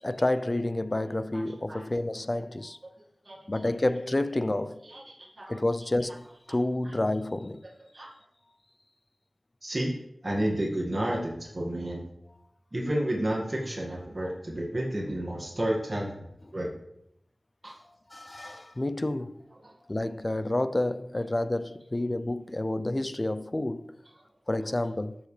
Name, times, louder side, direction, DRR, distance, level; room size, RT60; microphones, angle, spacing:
voice 1, 0.0-2.8 3.5-4.9 5.5-7.6 18.1-19.4 19.9-24.0 24.5-25.2, left 1 dB, 30° left, 0.5 m, -29 dB
voice 2, 4.8-5.6 6.8-6.9 7.9-8.1 9.6-9.9 10.2-12.0 12.7-16.1 16.5-16.7 17.6-17.7 19.6-19.7, right 1 dB, 35° right, 1.9 m, -31 dB
13.0 x 7.2 x 3.3 m
wide cardioid pair, 55°, 0 cm